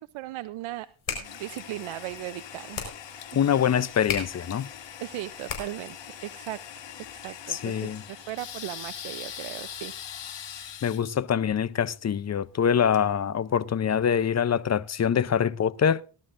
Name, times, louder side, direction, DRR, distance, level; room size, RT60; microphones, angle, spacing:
voice 1, 0.1-3.4 5.0-9.9, right 16 dB, 90° right, 0.6 m, -38 dB
sound 1, 0.8-6.0, left 6 dB, 80° left, 4.6 m, -38 dB
Toilet flush, 1.2-13.9, left 9 dB, 65° left, 1.5 m, -42 dB
voice 2, 3.3-4.7 7.5-8.0 10.8-16.0, left 8 dB, 35° left, 0.6 m, -24 dB
20.0 x 12.0 x 2.5 m
cardioid pair, 80°, 47 cm